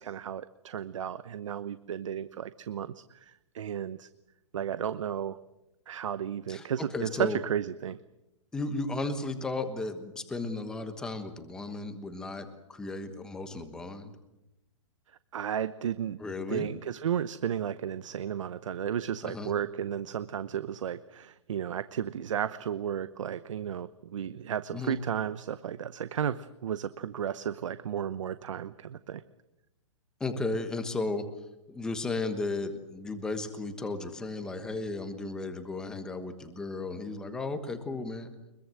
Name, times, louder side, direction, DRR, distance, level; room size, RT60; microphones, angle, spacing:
voice 1, 0.0-4.1 4.5-5.4 5.9-8.0 15.3-16.2 16.5-29.2, right 9 dB, 65° right, 14 dB, 0.9 m, -33 dB
voice 2, 6.9-7.4 8.5-14.1 16.2-16.7 19.2-19.5 24.7-25.0 30.2-31.2 31.7-38.3, left 3 dB, 5° left, 8 dB, 1.3 m, -34 dB
24.0 x 22.0 x 7.8 m, 0.94 s
hypercardioid pair, 180°, 17 cm